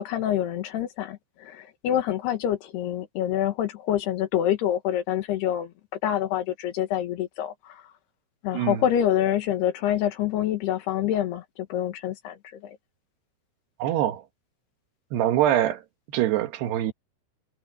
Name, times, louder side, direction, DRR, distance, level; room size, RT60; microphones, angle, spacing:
voice 1, 0.0-5.7 6.0-7.8 8.4-12.4 12.6-12.8, left 11 dB, 80° left, 3.5 m, -26 dB
voice 2, 13.8-14.2 15.1-15.8 16.1-16.9, right 12 dB, 85° right, 3.4 m, -24 dB
omnidirectional pair, 4.6 m